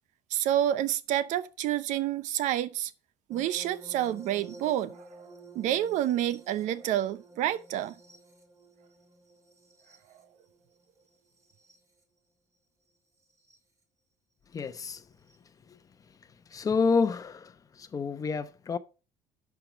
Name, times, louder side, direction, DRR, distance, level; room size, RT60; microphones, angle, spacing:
voice 1, 0.3-2.9 3.3-5.1 5.5-7.9, right 12 dB, 65° right, 0.7 m, -28 dB
sound 1, 3.3-12.0 13.3-13.6 15.3-15.4, right 2 dB, 25° right, 2.6 m, -51 dB
voice 2, 14.5-15.0 15.7-15.8 16.5-18.8, left 5 dB, 25° left, 0.8 m, -29 dB
11.5 x 4.8 x 5.8 m
cardioid pair, 145°, 13 cm